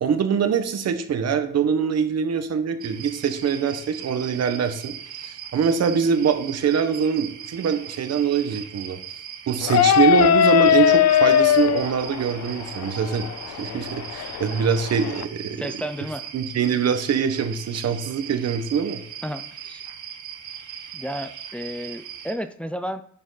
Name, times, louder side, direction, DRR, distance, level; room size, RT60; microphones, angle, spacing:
voice 1, 0.0-4.9 5.3-9.0 9.5-15.6 16.3-19.0, right 7 dB, 55° right, 8 dB, 1.3 m, -23 dB
sound 1, 2.8-22.3, right 8 dB, 75° right, 1.3 m, -39 dB
sound 2, 9.6-15.2, left 10 dB, 60° left, 0.6 m, -20 dB
voice 2, 15.6-16.2 19.2-19.9 20.9-23.0, equal, 5° left, 9 dB, 0.6 m, -32 dB
10.5 x 5.0 x 4.1 m, 0.64 s
cardioid pair, 90°, 30 cm